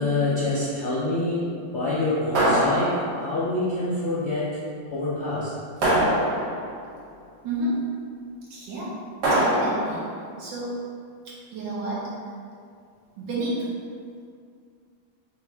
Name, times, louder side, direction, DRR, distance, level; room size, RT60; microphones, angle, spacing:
voice 1, 0.0-4.6 4.9-5.5, left 2 dB, 65° left, -8 dB, 0.6 m, -26 dB
sound 1, 2.3-3.4 5.8-6.8 9.2-10.1, right 1 dB, 60° right, 1.5 m, -23 dB
voice 2, 7.4-7.8 8.5-9.0 9.3-10.1 10.4-10.8 11.3-12.1 13.2-13.7, right 1 dB, 75° right, -7 dB, 1.8 m, -30 dB
6.1 x 2.6 x 3.4 m, 2.2 s
omnidirectional pair, 2.1 m